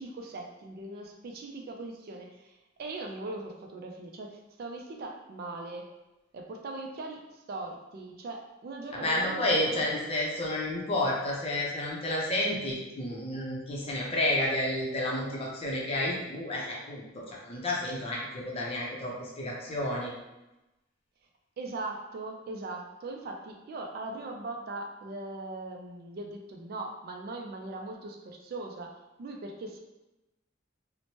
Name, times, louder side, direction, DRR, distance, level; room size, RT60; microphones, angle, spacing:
voice 1, 0.0-5.9 6.3-9.9 21.6-28.9 29.2-29.8, right 2 dB, 50° right, 2 dB, 0.3 m, -40 dB
voice 2, 8.9-20.1, left 1 dB, 30° left, -3 dB, 0.6 m, -30 dB
2.9 x 2.1 x 2.8 m, 1.0 s
head